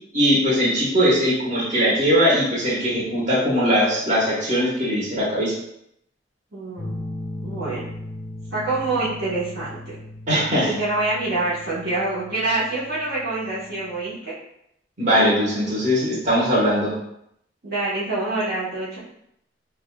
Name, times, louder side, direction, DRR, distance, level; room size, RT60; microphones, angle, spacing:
voice 1, 0.1-5.5 10.3-10.7 15.0-16.9, equal, 40° right, -7 dB, 1.4 m, -20 dB
voice 2, 6.5-7.0 7.4-7.9 8.5-10.0 10.6-14.3 17.6-19.0, right 2 dB, 60° right, -9 dB, 1.3 m, -26 dB
sound 1, 6.8-14.0, left 1 dB, 30° left, 0.5 m, -37 dB
6.4 x 2.5 x 2.3 m, 0.76 s
head